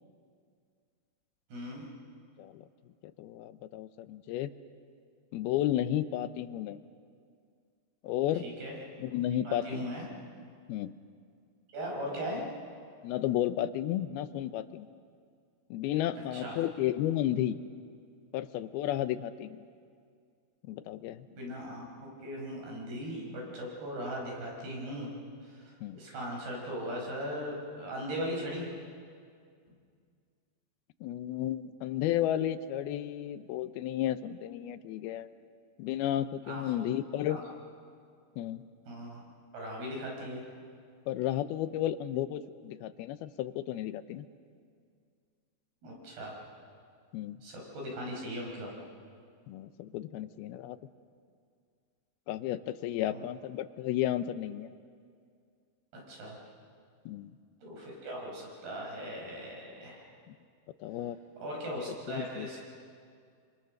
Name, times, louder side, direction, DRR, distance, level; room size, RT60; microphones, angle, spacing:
voice 1, 1.5-1.9 8.4-8.8 9.4-10.1 11.7-12.5 16.3-16.5 21.3-25.1 25.4-28.7 36.5-36.6 37.3-37.4 38.9-39.2 39.5-40.4 45.8-46.4 47.4-48.7 53.1-53.2 56.1-56.4 57.6-60.1 61.4-62.6, equal, 90° right, -1 dB, 7.6 m, -39 dB
voice 2, 3.2-4.5 5.3-6.8 8.0-8.5 9.0-9.9 10.7-10.9 13.0-14.9 15.7-17.6 18.3-19.6 20.7-21.3 25.8-26.0 31.0-35.3 35.8-37.4 38.4-38.7 41.1-44.3 47.1-47.4 49.5-50.8 52.3-54.7 57.1-57.3 60.3-60.4 60.8-61.2 61.9-62.6, left 12 dB, 85° left, 12 dB, 2.6 m, -33 dB
27.0 x 26.0 x 6.6 m, 2.2 s
omnidirectional pair, 4.4 m